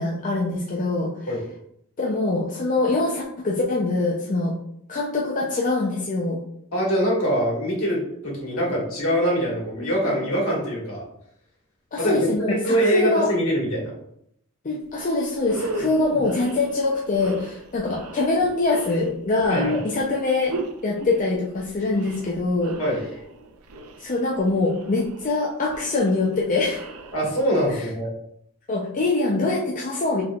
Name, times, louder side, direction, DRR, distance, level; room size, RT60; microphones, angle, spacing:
voice 1, 0.0-1.3 2.0-4.5 4.9-6.4 9.8-9.9 11.9-13.3 14.6-20.5 20.8-22.8 24.0-26.9 27.7-27.9 28.7-30.2, left 3 dB, 35° left, -3 dB, 0.6 m, -24 dB
voice 2, 6.7-11.0 12.0-13.9 16.0-16.2 19.5-19.8 22.8-23.0 27.1-28.1, equal, 70° left, -3 dB, 1.7 m, -23 dB
sound 1, 14.9-15.0 15.4-27.7, right 1 dB, 80° right, 0.5 m, -36 dB
5.2 x 3.4 x 2.3 m, 0.72 s
head